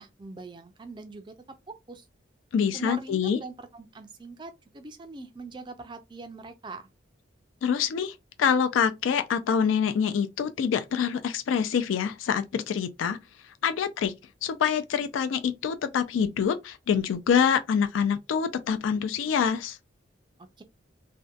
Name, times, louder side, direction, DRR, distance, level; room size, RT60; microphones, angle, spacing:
voice 1, 0.0-1.3 1.7-2.1 2.7-6.9 20.4-20.6, right 3 dB, 25° right, 0.3 m, -42 dB
voice 2, 2.5-3.4 7.6-13.2 13.6-14.1 14.4-19.8, left 7 dB, 85° left, 0.3 m, -26 dB
2.6 x 2.1 x 2.3 m
head